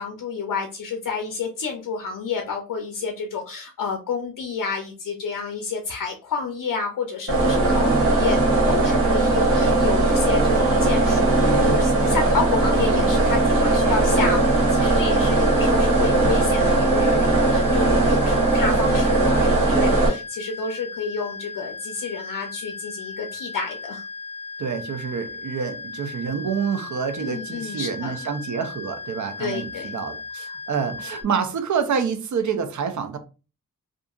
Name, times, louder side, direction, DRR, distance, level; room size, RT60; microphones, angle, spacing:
voice 1, 0.0-8.4 8.6-24.0 27.2-28.1 29.4-30.0, left 5 dB, 70° left, 0.5 m, -30 dB
sound 1, 7.3-20.1, right 2 dB, 40° right, 1.2 m, -19 dB
sound 2, 12.2-31.2, left 4 dB, 10° left, 0.5 m, -37 dB
voice 2, 24.6-33.2, right 6 dB, 60° right, 0.5 m, -27 dB
2.6 x 2.4 x 2.3 m
wide cardioid pair, 110°, 34 cm